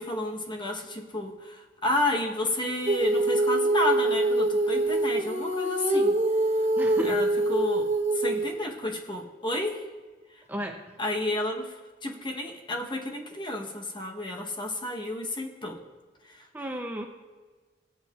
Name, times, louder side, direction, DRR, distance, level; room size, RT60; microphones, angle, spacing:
voice 1, 0.0-6.1 7.0-9.8 11.0-11.7 12.0-15.8 16.3-16.4, left 1 dB, 25° left, 2 dB, 0.9 m, -31 dB
Female singing, 2.9-8.6, right 2 dB, 40° right, 0.8 m, -25 dB
voice 2, 6.8-7.2 10.5-10.8 16.5-17.1, equal, 10° right, 3 dB, 0.5 m, -33 dB
18.0 x 8.0 x 2.3 m, 1.3 s
head